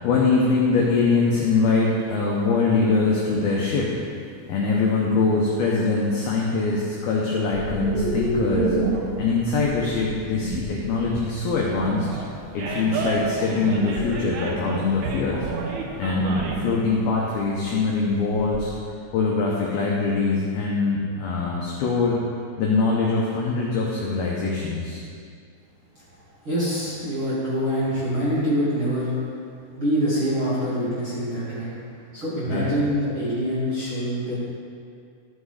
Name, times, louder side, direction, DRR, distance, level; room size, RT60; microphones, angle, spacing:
voice 1, 0.0-3.9 4.5-8.8 9.2-12.1 12.5-15.5 16.0-18.7 19.1-22.2 22.6-25.0 32.5-32.7, left 4 dB, 80° left, -3 dB, 2.2 m, -23 dB
sound 1, 0.7-0.8 1.3-1.5 2.2-2.3 3.2-3.9 5.2-5.3 5.7-6.0 7.5-18.8, right 2 dB, 55° right, 2.8 m, -31 dB
Animal, 11.7-16.7, right 4 dB, 80° right, 2.2 m, -31 dB
voice 2, 26.4-29.1 29.7-31.7 32.1-34.3, equal, 40° right, -11 dB, 2.0 m, -25 dB
14.0 x 6.1 x 4.9 m, 2.3 s
omnidirectional pair, 5.7 m